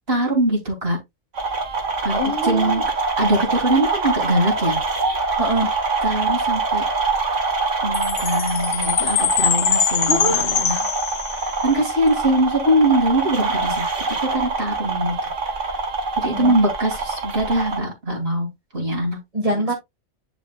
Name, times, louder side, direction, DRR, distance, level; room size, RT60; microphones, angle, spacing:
voice 1, 0.1-1.0 2.0-2.2 2.4-2.8 3.2-4.8 5.1-5.3 6.0-6.9 7.8-10.9 11.6-13.9 14.2-15.1 16.2-18.5 18.7-19.2, right 1 dB, 55° right, 3.3 m, -22 dB
sound 1, 1.3-17.8, right 4 dB, 90° right, 2.0 m, -25 dB
voice 2, 2.1-2.8 5.4-5.7 10.1-10.5 16.3-16.6 19.3-19.7, right 1 dB, 30° right, 1.7 m, -24 dB
Chime, 7.9-11.7, left 8 dB, 70° left, 1.1 m, -23 dB
10.5 x 5.0 x 2.3 m
omnidirectional pair, 1.2 m